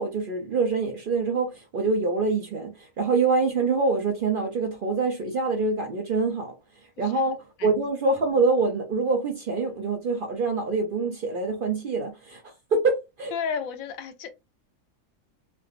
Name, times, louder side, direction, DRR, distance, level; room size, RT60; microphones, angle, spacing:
voice 1, 0.0-6.5 7.0-12.4 12.7-13.3, right 3 dB, 55° right, 0.6 m, -25 dB
voice 2, 13.3-14.3, left 6 dB, 85° left, 1.1 m, -33 dB
3.2 x 2.5 x 2.4 m
omnidirectional pair, 1.4 m